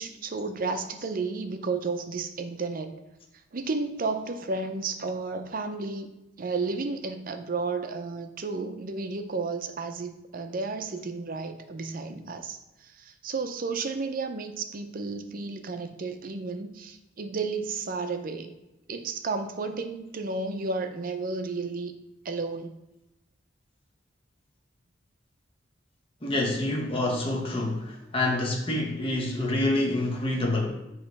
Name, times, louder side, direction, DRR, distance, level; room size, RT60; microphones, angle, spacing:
voice 1, 0.0-3.0 3.5-6.1 6.4-18.5 18.9-21.9 22.2-22.8, right 4 dB, 45° right, 7 dB, 0.6 m, -32 dB
voice 2, 26.2-30.7, left 2 dB, 30° left, 0 dB, 0.9 m, -27 dB
7.5 x 3.1 x 4.6 m, 0.97 s
head